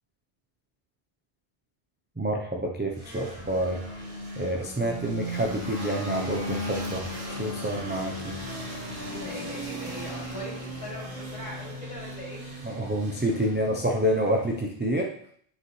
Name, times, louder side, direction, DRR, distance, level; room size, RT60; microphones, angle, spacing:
voice 1, 2.2-3.8 4.4-8.4 12.6-15.1, right 1 dB, 15° right, -1 dB, 0.5 m, -28 dB
sound 1, 2.9-14.7, equal, 50° right, 1.5 m, -36 dB
voice 2, 9.1-12.4, equal, 30° left, -5 dB, 2.9 m, -40 dB
7.9 x 6.0 x 3.2 m, 0.63 s
omnidirectional pair, 1.1 m